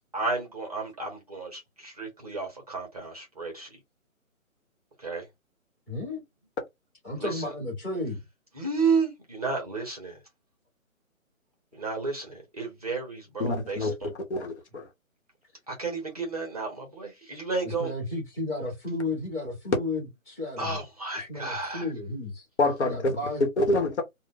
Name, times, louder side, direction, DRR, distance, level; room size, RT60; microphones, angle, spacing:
voice 1, 0.1-3.7 5.0-5.3 7.2-7.5 8.6-10.2 11.7-14.1 15.7-17.9 20.6-21.9, right 4 dB, 30° right, 0.6 m, -32 dB
voice 2, 5.9-6.2 7.0-8.2 17.6-20.8 21.3-22.5 22.8-23.4, left 2 dB, 10° left, 1.0 m, -33 dB
voice 3, 13.4-14.9 22.6-23.2 23.6-24.0, left 2 dB, 50° left, 1.1 m, -27 dB
2.4 x 2.1 x 3.6 m
hypercardioid pair, 155°, 42 cm